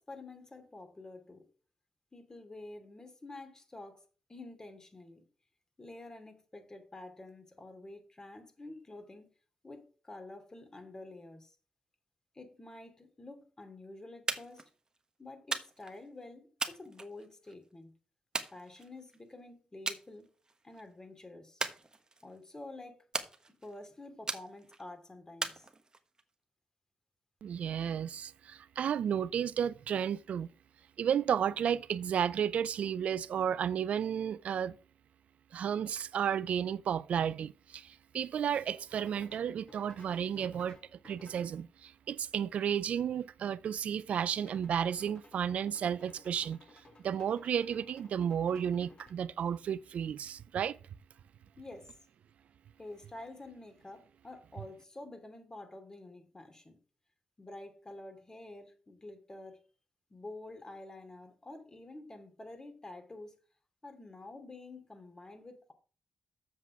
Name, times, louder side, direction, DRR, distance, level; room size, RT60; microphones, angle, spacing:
voice 1, 0.0-1.5 2.1-4.0 4.3-5.2 5.8-9.3 9.6-11.6 12.3-14.6 15.2-17.9 18.5-20.3 20.6-21.6 22.2-23.0 23.5-25.7 51.6-52.0 52.8-56.8 57.4-59.6 60.1-63.3 63.8-65.7, left 2 dB, 30° left, 2.7 m, -49 dB
sound 1, 14.3-14.7 15.5-16.0 16.6-17.5 18.3-19.2 19.9-20.1 20.5-20.8 21.6-22.4 23.1-23.8 24.3-24.8 25.4-26.2, right 3 dB, 30° right, 1.2 m, -38 dB
voice 2, 27.4-30.5 31.0-34.8 35.5-46.6 47.0-50.8, right 8 dB, 70° right, 0.4 m, -33 dB
sound 2, 36.1-36.3 39.0-41.6 44.4-49.1, left 2 dB, 50° left, 3.0 m, -58 dB
7.4 x 5.9 x 6.0 m
supercardioid pair, 50°, 2 cm